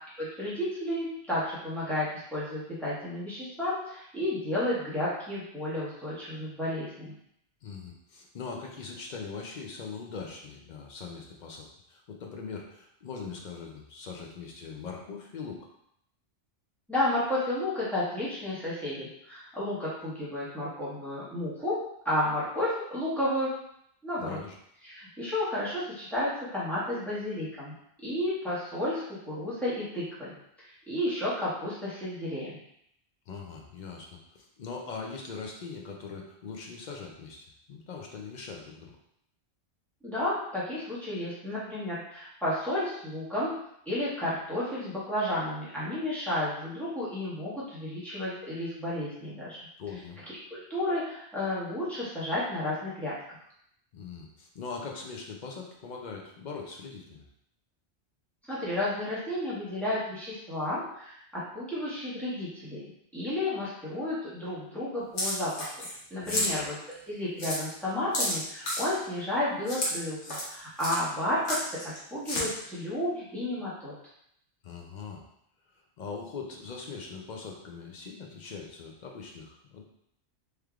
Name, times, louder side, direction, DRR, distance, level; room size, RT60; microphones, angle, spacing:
voice 1, 0.2-7.1 16.9-21.8 22.0-23.5 24.0-24.4 24.8-27.7 28.0-30.3 30.6-32.6 40.0-43.5 43.9-49.6 50.3-53.1 58.5-62.8 63.1-65.7 66.1-71.6 72.1-73.9, left 1 dB, ahead, -10 dB, 1.2 m, -32 dB
voice 2, 7.6-15.7 24.2-24.6 33.3-38.9 49.8-50.2 53.9-57.3 66.2-66.6 74.6-75.2 76.0-79.8, left 5 dB, 55° left, 0 dB, 0.5 m, -41 dB
sound 1, 65.2-66.0 66.3-66.5 66.9-67.0 67.4-67.6 68.1-68.9 69.7-69.9 70.2-70.5 70.8-71.0 71.4-72.0 72.3-72.4, left 1 dB, 90° left, 1.3 m, -30 dB
3.3 x 3.2 x 2.3 m, 0.73 s
omnidirectional pair, 1.1 m